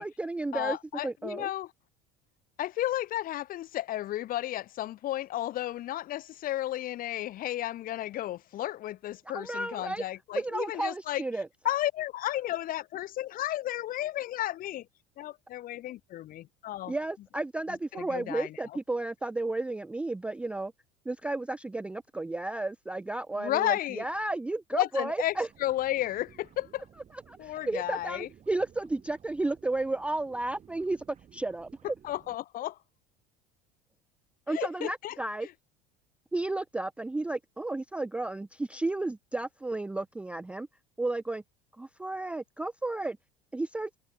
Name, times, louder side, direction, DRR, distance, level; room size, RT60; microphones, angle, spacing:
voice 1, 0.0-0.8 1.0-1.5 9.3-10.0 10.3-11.5 16.9-20.7 21.1-25.5 27.3-31.0 31.3-31.7 34.5-35.5 36.3-40.7 41.0-41.4 41.8-43.2 43.5-43.9, right 2 dB, 5° right, 0.4 m, -33 dB
voice 2, 0.5-1.7 2.6-11.2 11.6-14.9 15.2-16.9 17.9-18.5 23.4-24.0 24.7-25.3 25.6-26.8 27.4-28.3 32.0-32.8 34.5-35.1 35.4-35.5, left 14 dB, 45° left, 3.3 m, -33 dB
sound 1, 25.1-32.4, right 8 dB, 35° right, 5.4 m, -57 dB
figure-of-eight pair, 70°, 20 cm